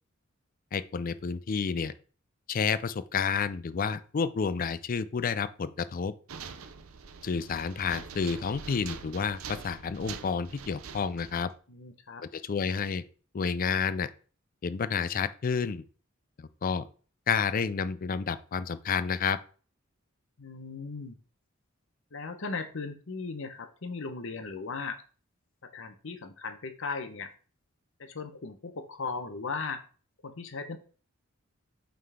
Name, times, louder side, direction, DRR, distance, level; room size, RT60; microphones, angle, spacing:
voice 1, 0.7-1.9 2.5-6.1 7.2-11.5 12.3-13.0 13.3-14.1 14.6-15.8 16.4-16.8 17.3-19.4, left 6 dB, 40° left, 15 dB, 0.4 m, -30 dB
sound 1, 6.3-11.5, right 6 dB, 85° right, 0.6 m, -44 dB
voice 2, 11.7-12.2 20.4-21.2 22.1-25.0 25.6-27.3 28.0-29.8 30.2-30.8, left 4 dB, 65° left, 8 dB, 0.9 m, -37 dB
5.6 x 3.8 x 4.8 m, 0.39 s
head